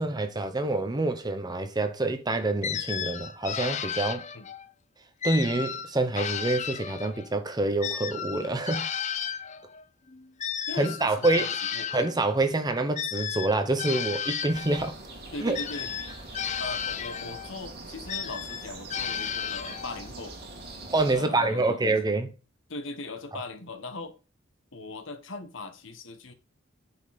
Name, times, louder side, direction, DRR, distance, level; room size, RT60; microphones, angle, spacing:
voice 1, 0.0-4.2 5.2-8.9 10.8-11.5 11.9-15.0 15.4-15.6 20.9-22.3, right 2 dB, 20° right, 0.9 m, -27 dB
sound 1, 2.6-4.7 5.2-7.3 7.8-12.2 13.0-14.9 15.5-17.5 18.1-20.1, left 8 dB, 35° left, 0.5 m, -33 dB
voice 2, 10.7-11.9 15.3-15.9 16.6-20.4 21.1-21.8 22.7-24.2 24.7-26.3, left 3 dB, 65° left, 1.1 m, -39 dB
sound 2, 14.5-21.1, right 2 dB, 50° right, 2.4 m, -43 dB
9.2 x 5.3 x 4.0 m
head